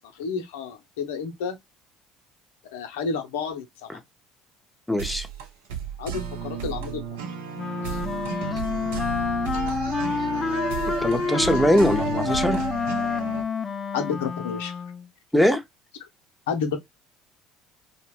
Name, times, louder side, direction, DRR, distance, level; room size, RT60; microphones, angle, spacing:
voice 1, 0.1-1.6 2.7-4.0 6.0-7.2 7.9-8.0 13.9-14.8 16.5-16.8, left 5 dB, 75° left, 0.6 m, -30 dB
voice 2, 4.9-5.3 11.0-12.6 15.3-15.6, equal, 5° left, 0.7 m, -21 dB
sound 1, 5.0-13.4, right 7 dB, 75° right, 0.6 m, -32 dB
Wind instrument woodwind instrument, 7.6-15.1, left 5 dB, 30° left, 0.3 m, -28 dB
2.8 x 2.1 x 3.1 m
hypercardioid pair, 60°, 0 cm